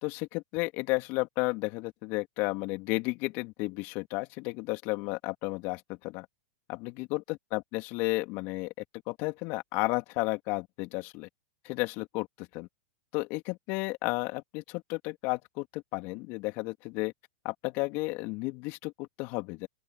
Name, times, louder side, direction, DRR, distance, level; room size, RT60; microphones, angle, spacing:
voice 1, 0.0-6.3 6.7-8.7 9.1-11.3 11.6-12.7 13.1-17.1 17.4-19.7, left 24 dB, 50° left, 3.0 m, -33 dB
open air
hypercardioid pair, 115°, 5 cm